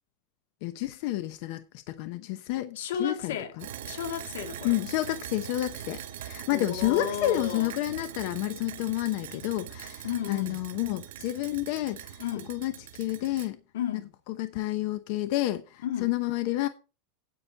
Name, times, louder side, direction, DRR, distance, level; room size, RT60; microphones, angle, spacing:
voice 1, 0.6-3.6 4.6-12.2 12.5-13.6 14.4-16.7, left 15 dB, 50° left, 0.9 m, -30 dB
voice 2, 2.8-3.6 3.8-4.8 6.5-7.7 10.0-10.6 12.2-12.5 13.7-14.1 15.8-16.1, left 9 dB, 85° left, 1.8 m, -33 dB
sound 1, 3.6-13.5, right 11 dB, 80° right, 1.8 m, -42 dB
9.9 x 8.7 x 4.1 m
supercardioid pair, 165°, 0 cm